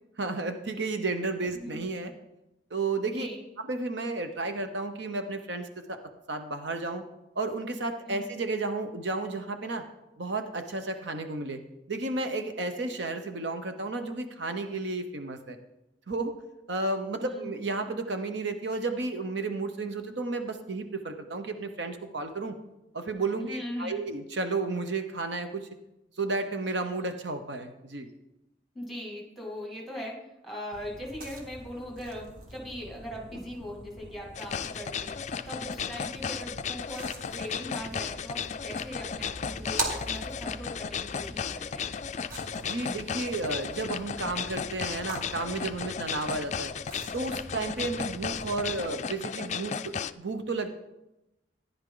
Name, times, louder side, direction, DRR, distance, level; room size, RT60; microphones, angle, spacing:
voice 1, 0.2-2.1 2.7-3.3 3.6-6.0 6.3-7.0 7.3-9.8 10.2-11.6 11.9-15.6 16.1-16.3 16.7-22.5 22.9-25.7 26.2-28.1 42.6-46.7 47.1-50.7, right 3 dB, 70° right, 7 dB, 0.9 m, -32 dB
voice 2, 3.1-3.4 8.1-8.2 17.2-17.5 23.4-24.0 28.7-35.1 35.5-41.9, equal, ahead, -1 dB, 2.3 m, -40 dB
sound 1, 30.7-48.8, right 1 dB, 45° right, 1.9 m, -42 dB
sound 2, 34.3-50.1, left 7 dB, 40° left, 0.3 m, -35 dB
14.5 x 10.5 x 3.9 m, 0.93 s
head